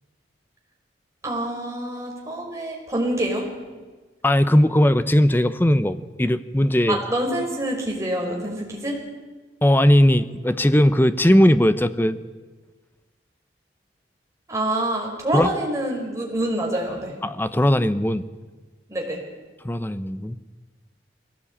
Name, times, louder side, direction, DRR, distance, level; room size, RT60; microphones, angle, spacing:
voice 1, 1.2-3.5 6.9-9.0 14.5-17.2 18.9-19.2, right 1 dB, 15° right, -1 dB, 5.3 m, -26 dB
voice 2, 4.2-7.0 9.6-12.2 15.3-15.5 17.2-18.3 19.6-20.4, left 1 dB, 10° left, 12 dB, 0.8 m, -18 dB
21.5 x 17.5 x 8.7 m, 1.3 s
head